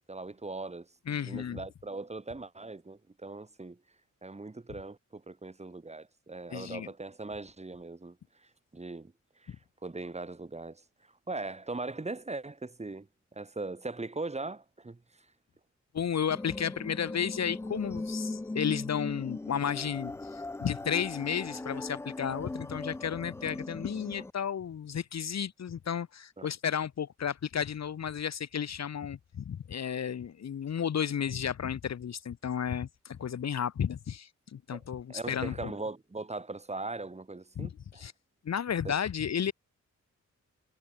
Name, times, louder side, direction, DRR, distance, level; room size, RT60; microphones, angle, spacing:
voice 1, 0.0-3.8 4.2-8.2 8.4-9.1 9.4-9.5 9.8-13.1 13.3-15.3 26.4-26.5 34.7-34.8 35.1-38.0 38.8-39.0, right 3 dB, 20° right, 4.5 m, -40 dB
voice 2, 1.1-1.6 6.5-6.9 15.9-35.7 37.6-38.1 38.4-39.5, left 8 dB, 60° left, 1.3 m, -33 dB
sound 1, 16.3-24.3, left 2 dB, 10° left, 0.3 m, -39 dB
wide cardioid pair, 150°, 30 cm